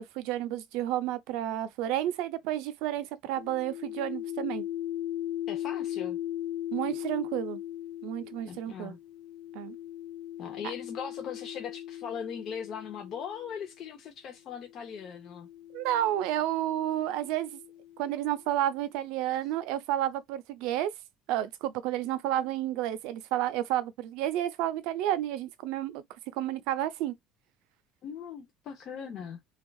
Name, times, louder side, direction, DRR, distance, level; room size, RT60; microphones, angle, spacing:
voice 1, 0.0-4.6 6.7-7.6 8.0-8.9 9.5-9.8 15.7-17.6 18.0-20.9 21.3-26.0 26.3-27.1, right 12 dB, 75° right, 0.6 m, -31 dB
sound 1, 3.4-13.7 14.6-18.4, left 12 dB, 80° left, 0.4 m, -39 dB
voice 2, 5.5-6.2 8.5-9.0 10.4-15.5 28.0-29.4, left 7 dB, 45° left, 0.7 m, -39 dB
3.5 x 2.3 x 2.3 m
cardioid pair, 135°, 0 cm